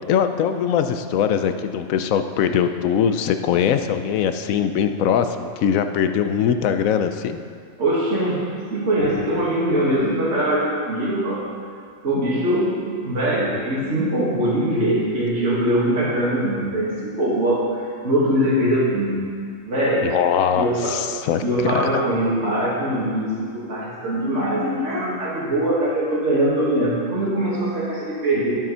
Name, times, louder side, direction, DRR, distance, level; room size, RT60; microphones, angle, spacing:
voice 1, 0.0-7.4 20.0-22.0, left 8 dB, 90° left, 9 dB, 1.1 m, -21 dB
voice 2, 7.8-8.4 8.7-11.4 12.0-17.6 18.0-19.3 19.7-20.1 20.5-21.0 21.4-28.5, right 1 dB, 65° right, -7 dB, 2.4 m, -22 dB
10.5 x 7.7 x 5.5 m, 2.2 s
omnidirectional pair, 1.4 m